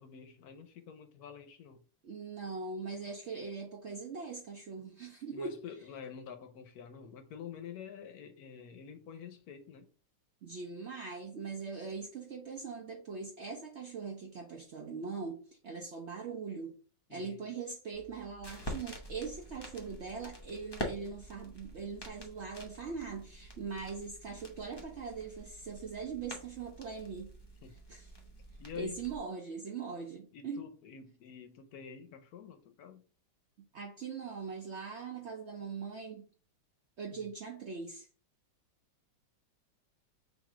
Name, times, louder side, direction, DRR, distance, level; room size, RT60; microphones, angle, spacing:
voice 1, 0.0-1.8 5.3-9.9 17.1-17.4 27.6-27.8 28.6-29.0 30.3-33.0 37.1-37.3, left 7 dB, 65° left, 1.0 m, -48 dB
voice 2, 2.0-5.5 10.4-16.8 17.1-27.3 27.9-28.1 28.7-30.6 33.7-36.2 37.0-38.1, right 5 dB, 80° right, 0.6 m, -41 dB
sound 1, 17.9-29.2, equal, 40° left, 0.3 m, -46 dB
3.9 x 2.6 x 4.8 m
omnidirectional pair, 2.0 m